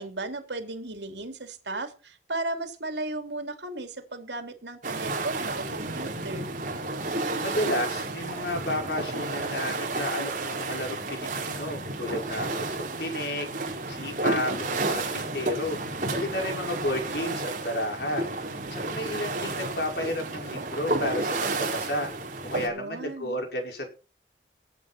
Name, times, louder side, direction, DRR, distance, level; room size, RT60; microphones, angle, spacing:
voice 1, 0.0-6.5 22.6-23.4, right 2 dB, 85° right, 7 dB, 3.2 m, -35 dB
sound 1, 4.8-22.7, right 2 dB, 45° right, 4.0 m, -31 dB
voice 2, 7.4-15.8 16.1-22.1 22.5-23.9, left 1 dB, 70° left, 2 dB, 5.6 m, -32 dB
19.0 x 9.1 x 4.5 m, 0.34 s
head